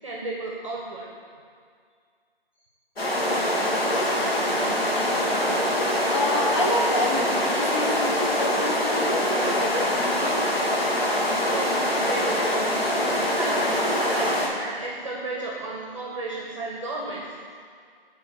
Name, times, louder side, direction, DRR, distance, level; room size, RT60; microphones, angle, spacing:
voice 1, 0.0-1.1 11.5-12.7 13.0-17.2, right 2 dB, 35° right, -4 dB, 0.8 m, -33 dB
sound 1, 3.0-14.5, left 1 dB, 80° left, 1.5 m, -24 dB
voice 2, 6.1-10.5, left 2 dB, 30° left, -1 dB, 0.6 m, -29 dB
6.8 x 3.8 x 4.8 m, 2.1 s
figure-of-eight pair, 165°, 29 cm